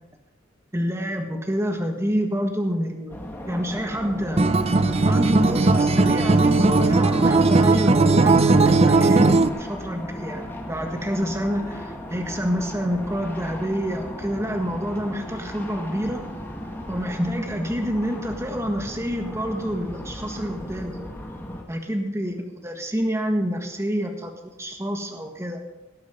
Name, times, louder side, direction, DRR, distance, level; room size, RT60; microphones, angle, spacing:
voice 1, 0.7-3.2 3.5-4.4 5.1-16.2 16.9-21.0 21.7-22.3 22.6-24.3 24.6-25.6, equal, 15° right, 3 dB, 1.6 m, -27 dB
sound 1, 3.1-21.6, left 1 dB, 10° left, 1.7 m, -36 dB
Acoustic guitar, 4.4-9.5, right 3 dB, 35° right, 0.5 m, -18 dB
18.0 x 8.4 x 5.5 m, 0.98 s
head